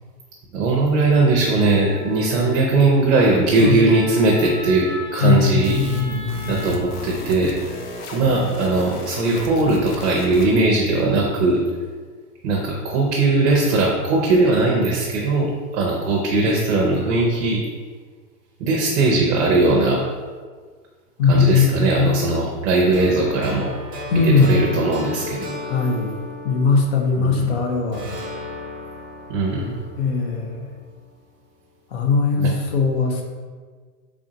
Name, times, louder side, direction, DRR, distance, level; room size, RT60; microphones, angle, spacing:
voice 1, 0.5-5.8 6.4-7.5 8.1-11.6 12.4-17.6 18.6-20.0 21.3-23.7 24.2-25.6 27.2-27.6 29.3-29.8 32.4-32.5, right 2 dB, 50° right, -1 dB, 0.7 m, -19 dB
Wind instrument woodwind instrument, 1.6-6.8, equal, 15° left, 0.9 m, -38 dB
voice 2, 5.2-6.7 21.2-22.2 24.1-24.6 25.6-26.2 26.4-28.2 30.0-30.7 31.9-33.2, left 4 dB, 40° left, 2 dB, 0.6 m, -19 dB
sound 1, 5.6-10.7, left 2 dB, 70° left, 0.8 m, -35 dB
sound 2, 22.9-27.5 27.9-31.0, left 1 dB, 10° right, 0.4 m, -35 dB
3.4 x 2.6 x 3.8 m, 1.5 s
hypercardioid pair, 145°, 47 cm